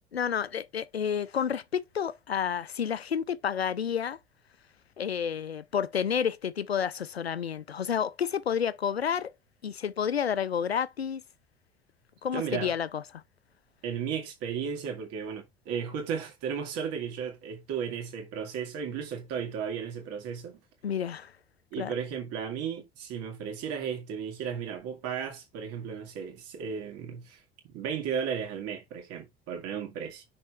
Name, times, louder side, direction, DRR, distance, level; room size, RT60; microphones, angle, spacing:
voice 1, 0.1-4.2 5.0-9.3 9.6-11.2 12.2-13.2 20.8-21.3 21.8-21.9, left 8 dB, 85° left, 0.5 m, -30 dB
voice 2, 12.3-12.7 13.8-20.6 21.7-27.4 27.7-30.2, right 7 dB, 55° right, 2.4 m, -34 dB
6.1 x 4.3 x 4.4 m
figure-of-eight pair, 65°, 30 cm